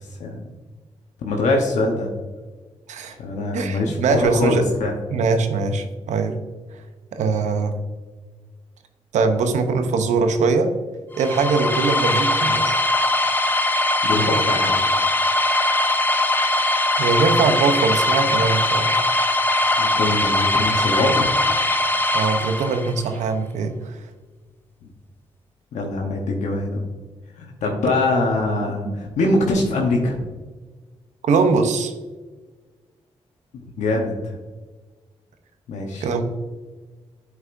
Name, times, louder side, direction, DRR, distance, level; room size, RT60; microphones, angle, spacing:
voice 1, 1.2-2.1 3.2-4.9 14.0-14.8 19.8-21.3 25.7-26.8 27.4-30.2 33.8-34.4 35.7-36.1, left 2 dB, 85° left, 0 dB, 0.9 m, -23 dB
voice 2, 3.5-4.6 5.1-6.4 7.1-7.8 9.1-10.7 11.2-12.8 16.4-16.6 17.0-18.9 22.1-24.0 28.8-28.9 31.2-31.9 36.0-36.2, right 4 dB, 85° right, 7 dB, 0.7 m, -21 dB
sound 1, 11.2-23.0, left 2 dB, 15° left, 0.6 m, -20 dB
8.1 x 4.8 x 2.5 m, 1.3 s
cardioid pair, 60°, 12 cm